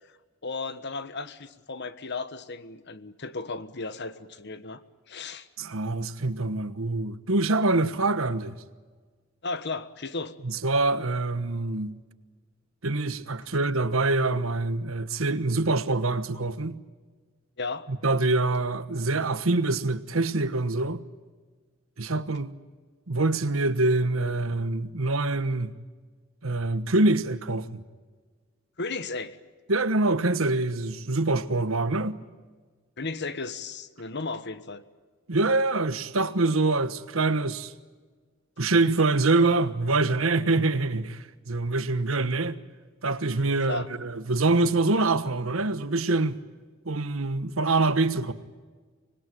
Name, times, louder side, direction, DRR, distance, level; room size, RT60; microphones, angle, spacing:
voice 1, 0.4-4.8 5.1-5.5 9.4-10.3 17.6-17.9 28.8-29.4 33.0-34.8 43.7-43.9, left 3 dB, 55° left, 1.4 m, -34 dB
voice 2, 5.6-8.6 10.4-12.0 12.8-16.8 18.0-21.0 22.0-22.5 23.1-25.7 26.4-27.8 29.7-32.2 35.3-37.7 38.6-42.6 43.0-46.4 46.9-48.3, right 2 dB, 80° right, 1.3 m, -25 dB
25.5 x 20.5 x 9.3 m
head